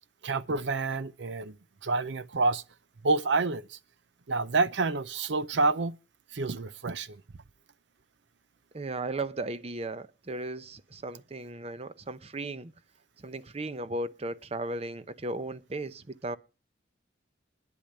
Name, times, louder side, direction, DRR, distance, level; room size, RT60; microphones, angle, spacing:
voice 1, 0.2-1.6 1.8-2.6 3.0-3.8 4.3-5.9 6.3-7.2, right 3 dB, 70° right, 0.6 m, -28 dB
voice 2, 8.7-12.7 13.2-16.4, right 2 dB, 35° right, 0.7 m, -36 dB
10.0 x 8.5 x 8.9 m
head